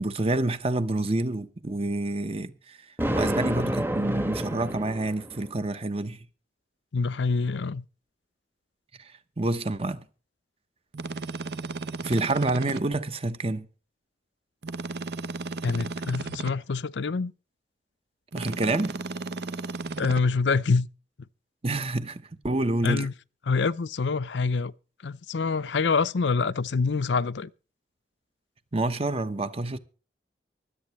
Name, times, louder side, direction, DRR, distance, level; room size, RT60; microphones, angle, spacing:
voice 1, 0.0-2.8 3.1-6.2 9.4-10.0 12.0-13.7 18.3-19.0 21.6-23.1 28.7-29.8, right 2 dB, 35° right, 1.0 m, -28 dB
Thunder, 3.0-5.5, equal, 15° right, 1.1 m, -29 dB
voice 2, 6.9-7.9 15.6-17.3 20.0-20.9 22.8-23.1 23.5-24.7 25.0-27.5, left 4 dB, 85° left, 0.6 m, -26 dB
sound 1, 10.9-12.8 14.6-16.5 18.3-20.2, right 3 dB, 65° right, 0.8 m, -34 dB
24.0 x 8.3 x 3.1 m
head